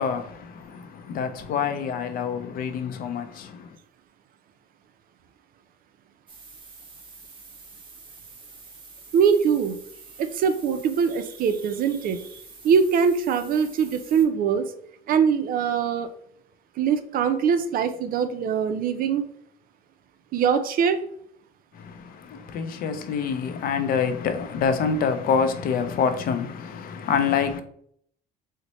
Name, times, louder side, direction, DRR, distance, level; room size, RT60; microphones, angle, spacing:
voice 1, 0.0-3.7 21.7-27.6, left 6 dB, 60° left, 0.5 m, -26 dB
sound 1, 6.3-14.2, right 4 dB, 30° right, 0.8 m, -47 dB
voice 2, 9.1-9.8 10.2-14.7 15.1-16.1 16.8-19.3 20.3-21.0, right 7 dB, 60° right, 0.4 m, -22 dB
4.0 x 2.1 x 3.0 m
cardioid pair, 110°, 17 cm